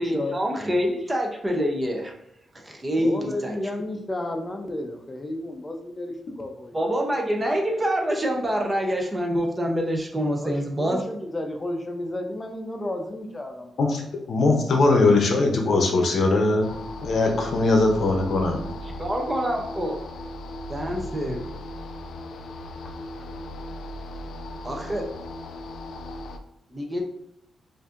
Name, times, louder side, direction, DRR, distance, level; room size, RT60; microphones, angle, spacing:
voice 1, 0.0-2.1 2.5-3.6 6.7-11.0 19.0-20.0 20.7-21.5 24.6-25.1 26.7-27.0, equal, 20° right, 2 dB, 0.6 m, -26 dB
voice 2, 3.0-6.8 10.4-14.0 22.8-22.9, left 1 dB, 20° left, 3 dB, 0.6 m, -32 dB
voice 3, 14.3-16.7 17.0-18.7, left 3 dB, 60° left, 3 dB, 0.7 m, -20 dB
sound 1, 16.6-26.4, left 1 dB, 85° left, 0.3 m, -37 dB
4.7 x 2.6 x 2.5 m, 0.74 s
cardioid pair, 100°, 0 cm